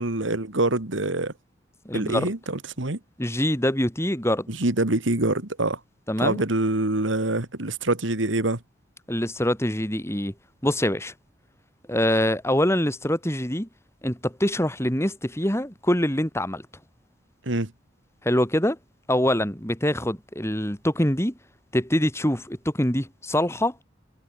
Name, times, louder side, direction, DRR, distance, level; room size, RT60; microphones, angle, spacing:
voice 1, 0.0-1.3 1.9-3.0 4.5-5.8 6.2-8.6 17.5-17.7, right 2 dB, 80° right, 2.3 m, -25 dB
voice 2, 1.8-2.3 3.2-4.5 6.1-6.4 9.1-10.3 10.6-11.1 11.9-13.7 14.0-16.6 18.2-18.8 19.1-21.3 21.7-23.7, left 1 dB, 15° left, 4.4 m, -24 dB
head